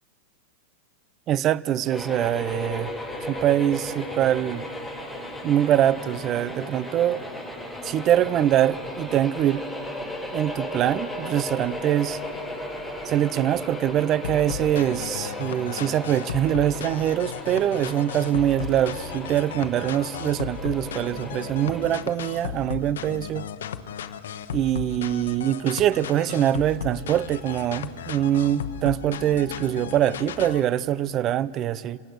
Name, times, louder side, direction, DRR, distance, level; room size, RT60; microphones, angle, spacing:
voice 1, 1.3-2.9 3.3-4.7 5.4-7.2 7.8-9.7 10.3-12.2 13.0-23.5 24.5-32.0, right 11 dB, 30° right, 0.5 m, -23 dB
sound 1, 1.9-21.9, left 1 dB, ahead, 5.4 m, -36 dB
sound 2, 14.2-30.6, left 8 dB, 85° left, 1.0 m, -35 dB
27.0 x 17.0 x 6.4 m
supercardioid pair, 145°, 0 cm